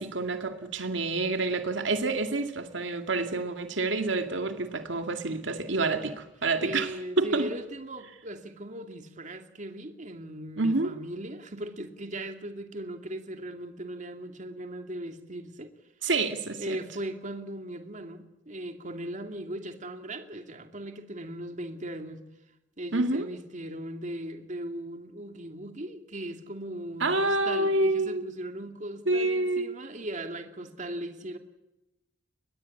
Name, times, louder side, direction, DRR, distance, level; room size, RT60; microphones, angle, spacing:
voice 1, 0.0-7.5 10.6-10.9 16.0-16.8 22.9-23.3 27.0-28.3 29.1-29.7, right 2 dB, 75° right, 6 dB, 2.3 m, -28 dB
voice 2, 6.6-15.7 16.6-22.2 22.8-31.4, right 1 dB, 40° right, 6 dB, 2.4 m, -38 dB
24.0 x 21.0 x 8.5 m, 0.97 s
head